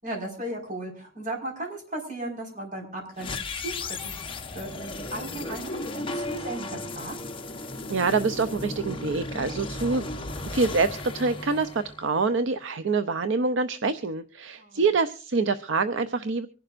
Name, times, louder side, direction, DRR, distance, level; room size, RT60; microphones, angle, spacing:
voice 1, 0.0-4.2 4.5-7.2 14.6-14.9, right 1 dB, 40° right, 1 dB, 5.0 m, -36 dB
sound 1, 3.2-12.4, left 2 dB, 25° left, 1.0 m, -35 dB
voice 2, 7.9-10.0 10.5-16.5, right 4 dB, 65° right, 11 dB, 0.6 m, -26 dB
24.5 x 11.0 x 2.5 m, 0.37 s
head